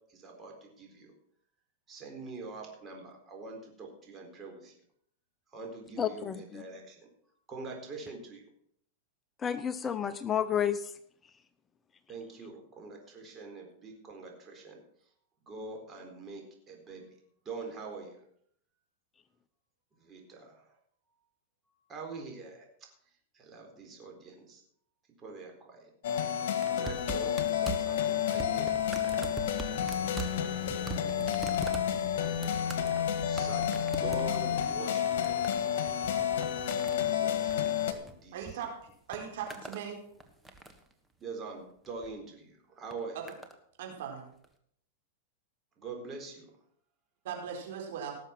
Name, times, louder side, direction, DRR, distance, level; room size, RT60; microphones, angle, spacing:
voice 1, 0.1-1.1 1.9-4.8 5.5-7.1 7.5-8.4 12.1-14.8 15.5-17.1 17.4-18.1 20.0-20.7 21.9-22.9 23.3-24.6 25.2-25.9 26.7-28.8 30.2-31.7 33.2-35.4 37.1-38.6 41.2-43.2 45.8-46.5, right 4 dB, 25° right, 1 dB, 4.2 m, -45 dB
voice 2, 6.0-6.6 9.4-10.9, left 8 dB, 20° left, 12 dB, 0.7 m, -31 dB
sound 1, 26.0-37.9, left 9 dB, 70° left, 1.8 m, -30 dB
sound 2, 26.6-38.5 38.8-39.9 40.2-40.9 41.8-42.1 42.9-43.6 44.4-44.5, right 4 dB, 10° right, 1.6 m, -43 dB
voice 3, 38.3-38.7 39.1-40.0 43.1-43.2 43.8-44.3 47.2-48.2, right 8 dB, 70° right, 2 dB, 4.4 m, -39 dB
18.0 x 7.2 x 6.0 m, 0.67 s
hypercardioid pair, 130°, 0 cm